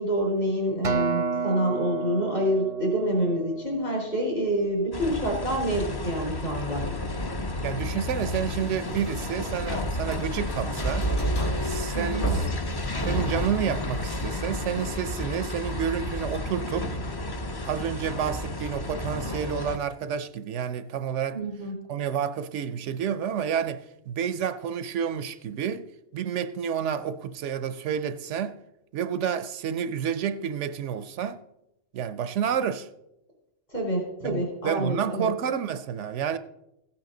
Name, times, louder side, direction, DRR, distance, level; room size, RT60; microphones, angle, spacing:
voice 1, 0.0-6.8 11.9-12.3 21.3-21.7 33.7-35.3, right 1 dB, 50° left, 4.2 m, -27 dB
Acoustic guitar, 0.8-5.3 5.9-6.0, right 5 dB, 35° right, 0.6 m, -32 dB
sound 1, 4.9-19.8, left 2 dB, 25° left, 0.5 m, -32 dB
voice 2, 7.6-11.1 11.6-12.5 13.0-17.0 17.6-21.4 21.9-28.6 28.9-31.4 31.9-32.9 34.2-36.4, right 8 dB, 80° right, 0.9 m, -30 dB
sound 2, 8.6-15.2, right 1 dB, 75° left, 2.9 m, -32 dB
15.5 x 8.6 x 3.8 m
omnidirectional pair, 1.2 m